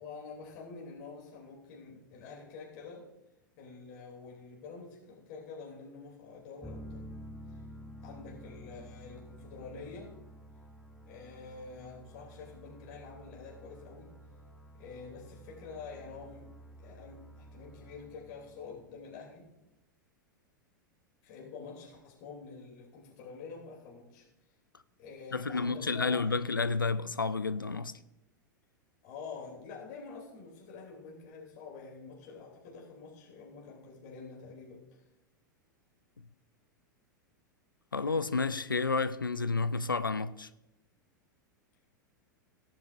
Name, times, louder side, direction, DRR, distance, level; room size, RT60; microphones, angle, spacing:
voice 1, 0.0-3.1 3.6-7.1 7.5-7.6 8.0-10.2 11.1-14.2 14.8-16.5 16.8-19.5 21.2-24.3 25.0-26.4 29.0-35.0, left 4 dB, 45° left, 2.9 m, -47 dB
sound 1, 6.6-19.3, equal, 5° left, 1.2 m, -51 dB
voice 2, 25.3-27.9 37.9-40.5, left 4 dB, 85° left, 0.4 m, -30 dB
18.0 x 9.6 x 2.5 m
figure-of-eight pair, 90°, 11 cm